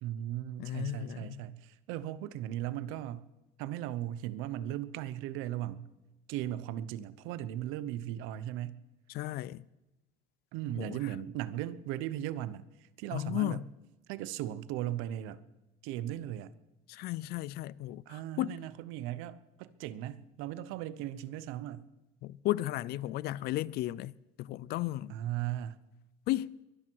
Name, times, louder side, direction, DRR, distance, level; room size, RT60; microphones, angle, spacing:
voice 1, 0.0-3.3 3.6-5.9 6.3-8.8 10.5-13.6 14.1-15.4 15.8-16.5 18.1-21.9 25.1-25.8, right 12 dB, 85° right, 0.8 m, -37 dB
voice 2, 0.6-1.4 9.1-9.6 10.8-11.0 13.1-13.6 16.9-18.6 22.2-24.1 24.4-25.1 26.3-26.6, left 16 dB, 55° left, 0.4 m, -34 dB
23.0 x 12.0 x 4.7 m
cardioid pair, 165°, 20 cm